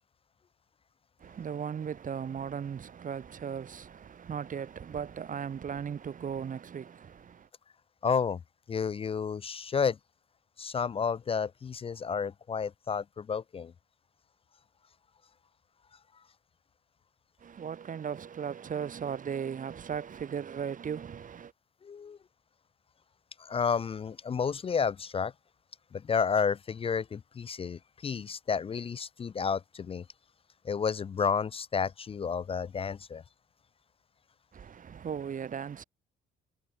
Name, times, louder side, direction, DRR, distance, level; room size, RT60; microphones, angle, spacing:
voice 1, 1.2-7.5 17.4-21.5 34.5-35.8, right 7 dB, 40° right, 1.0 m, -37 dB
voice 2, 8.0-8.4 8.7-10.0 10.6-13.7 21.8-22.2 23.4-25.3 25.9-30.0 30.6-33.2, left 6 dB, 30° left, 0.4 m, -31 dB
cardioid pair, 90°, 20 cm